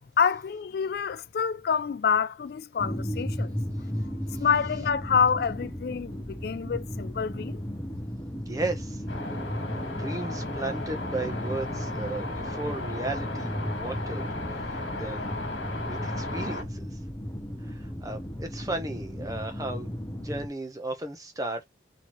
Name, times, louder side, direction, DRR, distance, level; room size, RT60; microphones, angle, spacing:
voice 1, 0.2-3.6 4.4-7.6, left 6 dB, 55° left, 0.3 m, -27 dB
sound 1, 2.8-20.5, equal, 15° left, 0.8 m, -35 dB
voice 2, 8.5-9.0 9.7-14.2 14.5-15.3 15.8-16.9 17.6-19.9 20.2-21.6, right 2 dB, 20° right, 0.8 m, -35 dB
sound 2, 9.1-16.6, left 2 dB, 75° left, 1.7 m, -35 dB
4.4 x 3.0 x 3.0 m
head